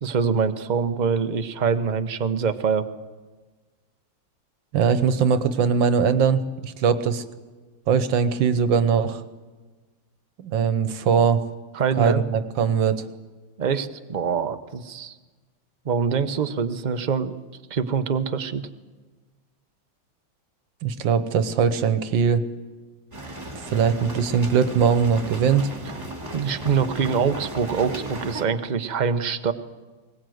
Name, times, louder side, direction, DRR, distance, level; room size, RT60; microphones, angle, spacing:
voice 1, 0.0-2.8 11.7-12.2 13.6-15.1 15.8-17.4 17.7-18.6 26.3-29.5, right 6 dB, 40° right, 9 dB, 0.6 m, -24 dB
voice 2, 4.7-7.2 7.9-9.2 10.4-11.4 12.0-13.0 20.8-22.4 23.7-25.7, right 6 dB, 75° right, 11 dB, 1.7 m, -21 dB
sound 1, 23.1-28.4, right 1 dB, 20° right, 2.9 m, -36 dB
21.5 x 19.5 x 7.8 m, 1.3 s
omnidirectional pair, 2.1 m